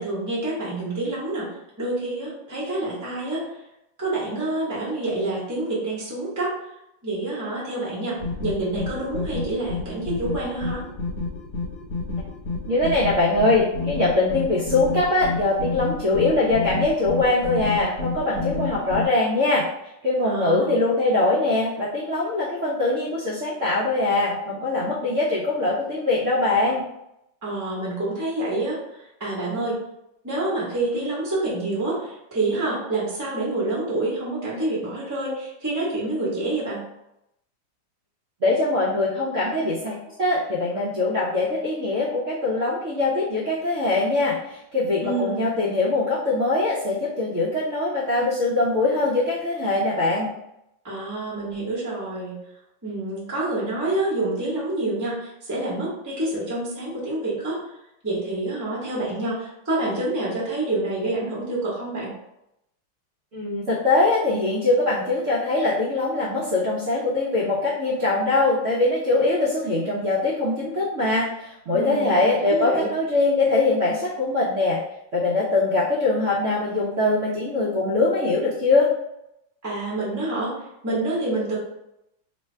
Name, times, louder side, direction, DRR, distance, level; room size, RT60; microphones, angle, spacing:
voice 1, 0.0-1.5 1.8-3.4 4.0-6.5 7.0-10.8 20.2-20.7 27.4-28.8 29.2-29.8 30.2-36.8 45.0-45.5 50.8-52.4 52.8-57.6 58.0-62.1 71.7-72.9 79.6-80.5 80.8-81.6, right 2 dB, 15° right, -7 dB, 0.7 m, -27 dB
sound 1, 8.2-19.1, left 3 dB, 60° left, 1.3 m, -30 dB
voice 2, 12.7-19.7 20.0-26.8 38.4-39.9 40.2-50.3 63.3-74.8 75.1-78.9, left 2 dB, 65° right, -6 dB, 0.7 m, -22 dB
3.2 x 2.2 x 4.3 m, 0.83 s
omnidirectional pair, 2.1 m